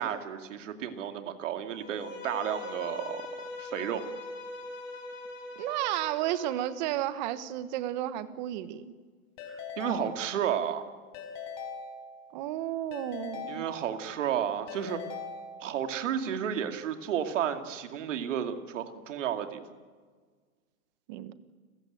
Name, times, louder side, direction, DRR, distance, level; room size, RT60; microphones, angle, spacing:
voice 1, 0.0-3.3 3.6-4.0 9.5-10.9 13.5-15.0 15.6-19.6, right 9 dB, 55° right, 7 dB, 2.5 m, -32 dB
Bowed string instrument, 1.7-6.7, left 3 dB, 60° left, 6.5 m, -42 dB
voice 2, 5.6-8.8 12.3-13.7 21.1-21.3, right 13 dB, 30° right, 14 dB, 1.2 m, -32 dB
Keyboard (musical) / Ringtone, 9.4-10.7 11.1-12.5 12.9-14.3 14.7-16.0, left 5 dB, 35° left, 4.5 m, -42 dB
29.5 x 15.5 x 9.2 m, 1.5 s
hypercardioid pair, 150°, 45 cm